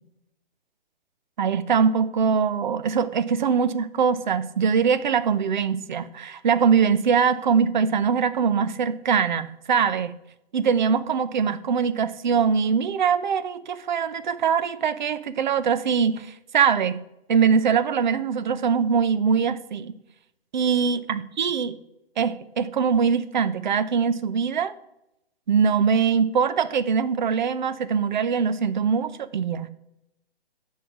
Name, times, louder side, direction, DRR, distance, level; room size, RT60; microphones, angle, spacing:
voice 1, 1.4-10.1 10.5-17.0 17.3-19.9 20.5-21.8 22.2-24.7 25.5-29.7, right 6 dB, 50° right, 0.6 m, -22 dB
6.3 x 5.6 x 7.0 m
figure-of-eight pair, 135°, 31 cm